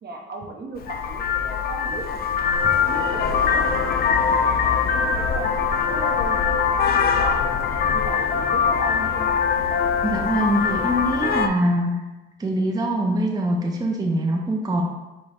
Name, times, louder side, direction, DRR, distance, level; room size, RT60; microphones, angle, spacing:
voice 1, 0.0-2.5 2.9-3.2 3.5-3.8 4.9-6.4 6.7-9.3, right 2 dB, 55° right, 1 dB, 0.8 m, -36 dB
Vehicle horn car horn honking, 0.8-11.5, left 6 dB, 50° left, 0.4 m, -22 dB
voice 2, 10.0-12.0 12.4-14.8, right 1 dB, 20° right, 0 dB, 0.6 m, -23 dB
5.0 x 2.3 x 4.2 m, 1.1 s
cardioid pair, 90°, 20 cm